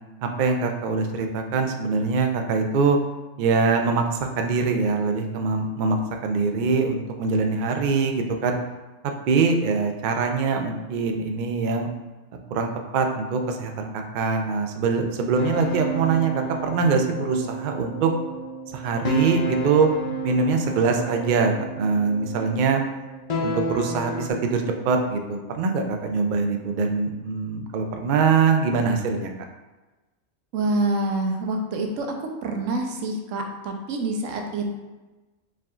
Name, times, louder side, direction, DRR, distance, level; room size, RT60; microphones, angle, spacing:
voice 1, 0.2-3.0 3.4-6.0 6.2-8.6 9.3-11.9 12.5-18.1 18.7-19.9 20.2-22.8 23.4-29.3, right 4 dB, 65° right, 4 dB, 0.5 m, -23 dB
sound 1, 15.4-24.3, right 2 dB, 55° left, 0.4 m, -31 dB
voice 2, 30.5-34.8, right 2 dB, 90° right, 3 dB, 1.0 m, -27 dB
4.6 x 3.6 x 2.4 m, 1.2 s
omnidirectional pair, 1.3 m